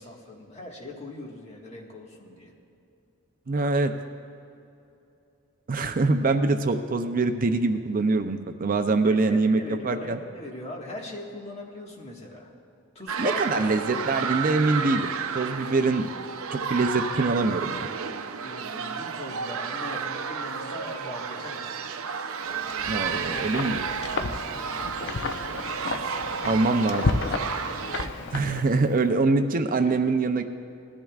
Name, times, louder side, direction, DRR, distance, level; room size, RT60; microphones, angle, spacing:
voice 1, 0.0-2.5 9.0-12.5 13.0-13.8 18.4-21.9 24.5-24.7 28.0-28.2 29.9-30.0, left 2 dB, 30° left, -1 dB, 1.6 m, -40 dB
voice 2, 3.5-3.9 5.7-10.2 13.2-16.1 16.5-17.9 22.9-23.9 26.4-27.2 28.3-30.4, right 3 dB, 40° right, 7 dB, 0.5 m, -24 dB
sound 1, 13.1-28.1, right 6 dB, 90° right, 0.6 m, -32 dB
Wind, 22.5-29.0, left 3 dB, 60° left, 0.6 m, -32 dB
19.5 x 14.0 x 2.4 m, 2.7 s
head